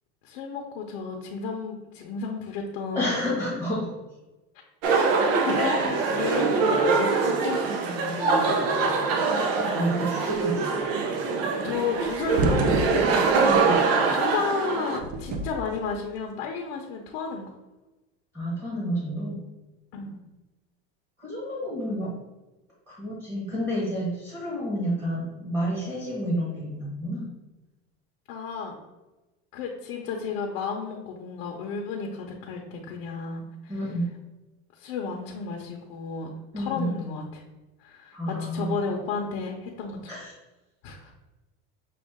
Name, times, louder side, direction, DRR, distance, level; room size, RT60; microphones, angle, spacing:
voice 1, 0.2-3.3 5.5-9.1 11.6-13.0 14.0-17.5 19.9-20.2 28.3-28.8 29.5-34.0 34.8-37.4 37.8-40.2 40.8-41.1, left 5 dB, 55° left, 0 dB, 0.7 m, -33 dB
voice 2, 2.9-3.9 9.8-10.8 13.4-13.7 18.3-19.4 21.2-22.1 22.9-27.3 33.7-34.1 36.5-36.9 38.1-38.8 40.1-40.3, equal, 10° right, -7 dB, 1.2 m, -30 dB
sound 1, 4.8-15.0, right 4 dB, 70° right, 0.7 m, -24 dB
sound 2, 11.8-13.6 14.9-15.9, right 3 dB, 30° right, 0.4 m, -29 dB
6.2 x 2.4 x 3.6 m, 1.1 s
cardioid pair, 160°, 30 cm